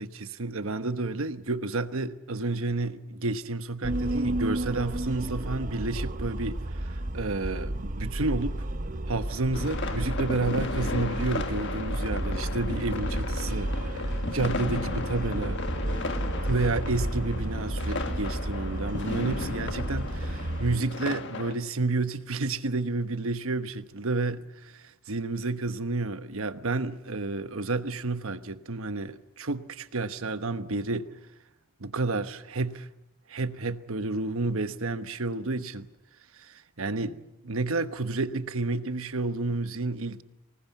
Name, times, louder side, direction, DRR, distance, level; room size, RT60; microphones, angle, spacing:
voice 1, 0.0-8.7 9.1-15.6 16.5-31.1 31.8-32.9 33.3-35.9 36.3-40.2, right 3 dB, 65° right, 1.1 m, -30 dB
sound 1, 3.8-20.8, right 1 dB, 35° right, 1.0 m, -32 dB
sound 2, 9.5-21.5, left 3 dB, 50° left, 1.5 m, -35 dB
25.0 x 20.0 x 8.2 m
head